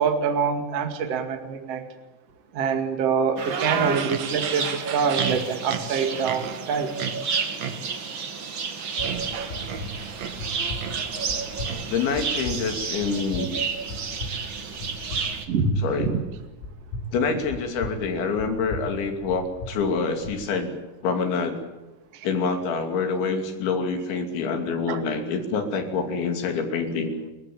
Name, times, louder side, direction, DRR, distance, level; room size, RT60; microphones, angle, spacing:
voice 1, 0.0-1.8 2.5-7.0 15.5-16.2 22.1-22.3 24.9-25.0, right 6 dB, 45° right, 6 dB, 2.1 m, -25 dB
sound 1, 3.4-15.5, right 5 dB, 60° right, 1.2 m, -31 dB
sound 2, 3.5-12.3, right 7 dB, 80° right, 1.5 m, -34 dB
sound 3, 9.0-20.4, left 1 dB, 90° left, 6.7 m, -37 dB
voice 2, 11.9-13.5 15.8-16.1 17.1-20.7 21.0-21.6 22.2-27.1, left 5 dB, 65° left, 6 dB, 4.8 m, -26 dB
29.0 x 16.0 x 8.6 m, 1.1 s
omnidirectional pair, 6.0 m